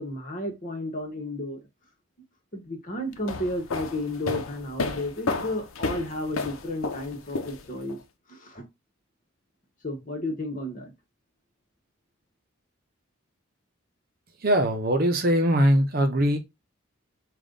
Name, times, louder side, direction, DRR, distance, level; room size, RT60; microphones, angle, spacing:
voice 1, 0.0-1.6 2.5-8.0 8.3-8.6 9.8-10.9, left 1 dB, 40° left, 1.3 m, -32 dB
sound 1, 3.1-8.0, left 3 dB, 85° left, 0.7 m, -32 dB
voice 2, 14.4-16.4, equal, 45° right, 0.7 m, -21 dB
5.2 x 2.5 x 3.8 m
head